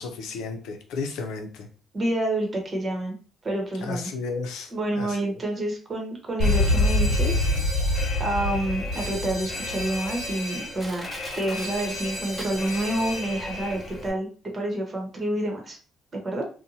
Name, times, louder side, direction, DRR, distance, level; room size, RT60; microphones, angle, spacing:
voice 1, 0.0-1.7 3.8-4.7 5.0-5.3, left 4 dB, 90° left, 5 dB, 0.5 m, -33 dB
voice 2, 1.9-3.2 3.4-4.1 4.7-11.1 11.4-15.8 16.1-16.4, right 1 dB, 35° right, 1 dB, 1.0 m, -28 dB
Alarm, 6.4-14.1, left 1 dB, 50° left, 1.3 m, -27 dB
Crushing, 10.8-13.0 13.3-13.4, equal, ahead, 0.9 m, -41 dB
2.7 x 2.1 x 2.7 m, 0.39 s
cardioid pair, 90°, 0 cm